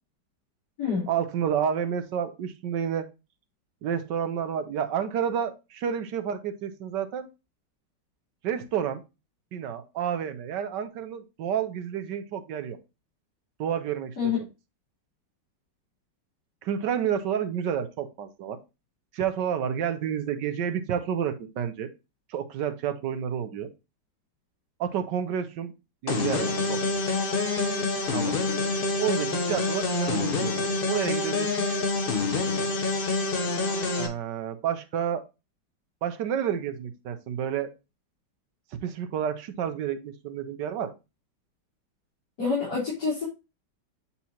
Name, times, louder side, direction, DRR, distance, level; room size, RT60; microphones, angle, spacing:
voice 1, 1.1-3.1 3.8-7.3 8.4-9.0 9.5-12.8 13.6-14.3 16.6-18.6 19.1-21.9 22.3-23.7 24.8-25.7 26.0-26.8 27.1-27.2 28.1-28.4 29.0-31.7 34.0-35.2 36.0-37.7 38.8-40.9, right 8 dB, 75° right, 10 dB, 1.4 m, -30 dB
sound 1, 26.1-34.1, left 3 dB, 40° left, 0.9 m, -27 dB
voice 2, 42.4-43.3, left 5 dB, 60° left, -7 dB, 3.8 m, -27 dB
8.3 x 4.2 x 2.8 m, 0.27 s
omnidirectional pair, 1.9 m